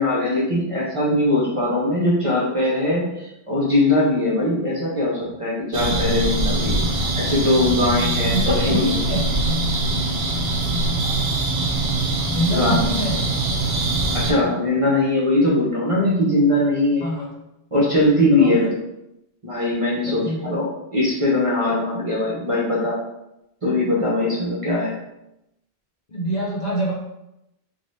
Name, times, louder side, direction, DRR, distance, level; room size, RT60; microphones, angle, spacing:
voice 1, 0.0-6.8 7.2-9.0 12.5-12.8 14.1-17.1 17.7-18.6 19.4-23.0 23.6-25.0, left 1 dB, 40° right, -4 dB, 0.6 m, -21 dB
sound 1, 5.7-14.3, right 2 dB, 70° right, 0.8 m, -23 dB
voice 2, 8.3-9.7 12.3-13.4 17.0-17.3 18.4-18.7 20.1-20.6 26.1-26.9, equal, 50° left, -5 dB, 0.6 m, -25 dB
2.7 x 2.3 x 3.1 m, 0.87 s
omnidirectional pair, 1.0 m